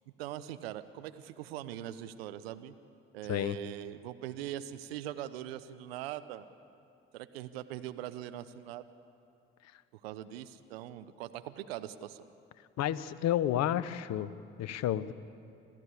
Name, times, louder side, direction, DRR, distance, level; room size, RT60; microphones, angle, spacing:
voice 1, 0.2-2.7 3.1-6.5 7.1-8.8 10.0-12.2, right 12 dB, 85° right, 12 dB, 0.9 m, -41 dB
voice 2, 12.8-14.3 14.6-15.1, left 11 dB, 60° left, 15 dB, 1.0 m, -30 dB
28.0 x 15.0 x 8.5 m, 2.5 s
hypercardioid pair, 55°, 30 cm